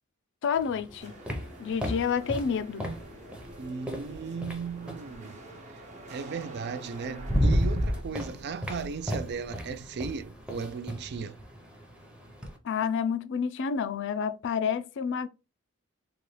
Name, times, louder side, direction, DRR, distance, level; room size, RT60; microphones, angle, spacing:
voice 1, 0.4-1.1 1.6-2.9 12.6-15.3, left 6 dB, 60° left, 0.4 m, -29 dB
sound 1, 0.6-5.1 6.4-6.5 6.9-12.6, equal, 5° right, 0.7 m, -32 dB
sound 2, 1.0-8.0, right 1 dB, 35° right, 0.8 m, -47 dB
voice 2, 3.6-5.4 6.1-11.4, right 5 dB, 50° right, 0.4 m, -36 dB
4.0 x 2.2 x 3.2 m
head